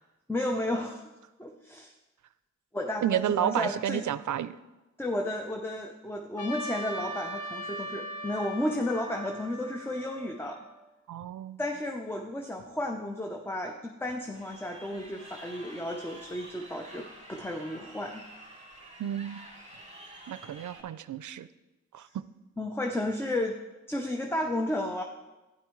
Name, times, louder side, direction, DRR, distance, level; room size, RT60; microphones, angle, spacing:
voice 1, 0.3-1.0 1.4-1.9 2.7-4.0 5.0-10.6 11.6-18.2 22.6-23.6 23.9-25.0, left 1 dB, 10° left, 3 dB, 0.7 m, -33 dB
voice 2, 3.0-4.6 11.1-11.6 19.0-19.5 20.3-21.5 21.9-22.2, right 10 dB, 75° right, 15 dB, 0.5 m, -31 dB
Trumpet, 6.4-10.8, equal, 85° left, 1.3 m, -40 dB
Crowd, 14.3-20.8, right 1 dB, 25° right, 2.6 m, -49 dB
12.0 x 9.8 x 3.2 m, 1.1 s
wide cardioid pair, 85°, 30 cm